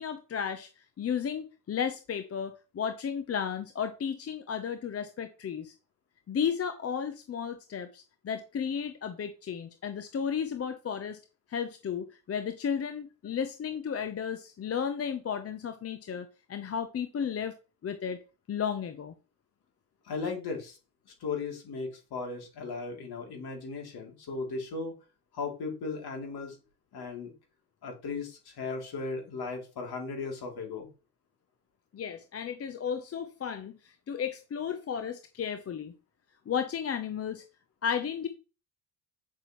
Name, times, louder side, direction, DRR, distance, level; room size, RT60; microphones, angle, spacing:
voice 1, 0.0-5.7 6.3-11.2 11.5-17.5 17.8-18.2 18.5-19.1 31.9-35.9 36.5-37.4 37.8-38.3, left 7 dB, 30° left, 9 dB, 0.8 m, -33 dB
voice 2, 20.0-20.8 21.2-24.9 25.3-26.6 26.9-27.3 27.8-30.9, left 4 dB, 55° left, 2 dB, 3.1 m, -36 dB
8.3 x 6.6 x 3.1 m, 0.32 s
supercardioid pair, 80°, 45 cm